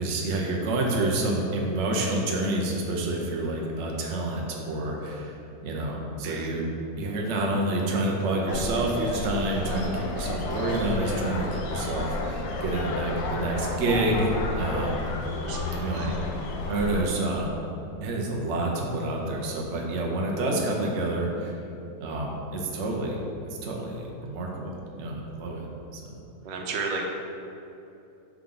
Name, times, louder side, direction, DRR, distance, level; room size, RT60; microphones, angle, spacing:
voice 1, 0.0-5.3 5.6-6.6 7.0-15.0 15.7-16.1 16.7-17.5 18.0-21.6 22.0-23.2 23.5-25.7 25.9-26.0, right 2 dB, 50° right, -1 dB, 0.9 m, -28 dB
sound 1, 8.5-17.0, left 2 dB, 85° left, 1.3 m, -31 dB
voice 2, 15.3-16.2 26.4-27.1, right 4 dB, 90° right, 0 dB, 1.4 m, -33 dB
5.8 x 4.9 x 3.8 m, 2.8 s
omnidirectional pair, 1.9 m